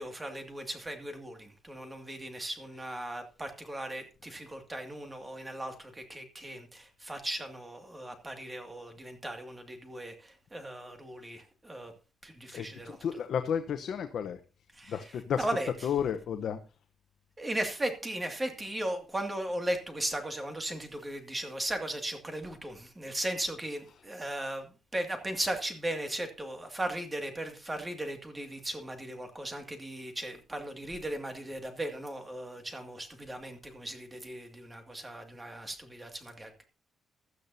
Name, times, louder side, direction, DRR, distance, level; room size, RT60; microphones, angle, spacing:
voice 1, 0.0-11.9 12.2-13.0 14.8-15.0 15.4-15.7 17.4-36.6, right 1 dB, 15° right, 6 dB, 2.3 m, -37 dB
voice 2, 12.5-14.4 14.9-16.6 23.9-24.1, left 8 dB, 65° left, 7 dB, 0.9 m, -33 dB
16.0 x 12.0 x 2.8 m, 0.33 s
cardioid pair, 115°, 0 cm